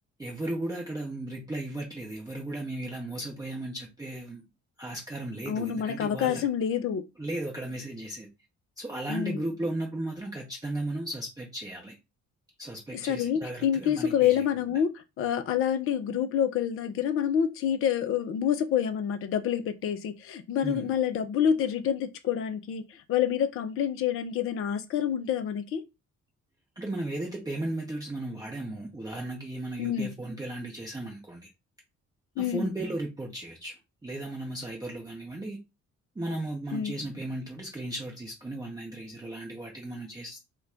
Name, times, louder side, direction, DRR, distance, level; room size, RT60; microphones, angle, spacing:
voice 1, 0.2-4.4 4.8-6.5 7.2-8.3 8.8-12.0 12.6-14.4 20.6-20.9 26.8-31.5 32.4-33.8 34.0-35.6 36.1-40.4, right 1 dB, 10° right, 0.7 m, -35 dB
voice 2, 5.5-7.0 9.1-9.4 12.9-25.8 29.8-30.1 32.4-32.7 36.7-37.0, left 9 dB, 30° left, 0.5 m, -27 dB
2.3 x 2.2 x 3.5 m
figure-of-eight pair, 40°, 44 cm